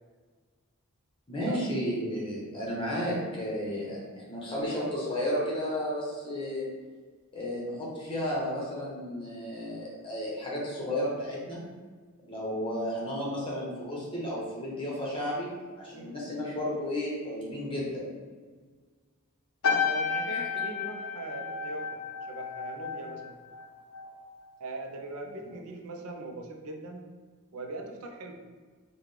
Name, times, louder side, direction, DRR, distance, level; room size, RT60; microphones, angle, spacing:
voice 1, 1.3-6.7 7.3-11.6 12.2-15.5 15.8-18.0 20.3-20.4, equal, 25° left, -5 dB, 1.0 m, -33 dB
sound 1, 19.6-24.2 24.5-24.9, left 5 dB, 65° left, 0.5 m, -32 dB
voice 2, 19.8-22.0 22.3-23.4 24.6-27.0 27.5-28.4, right 2 dB, 80° right, 3 dB, 0.5 m, -40 dB
4.8 x 2.2 x 3.3 m, 1.5 s
head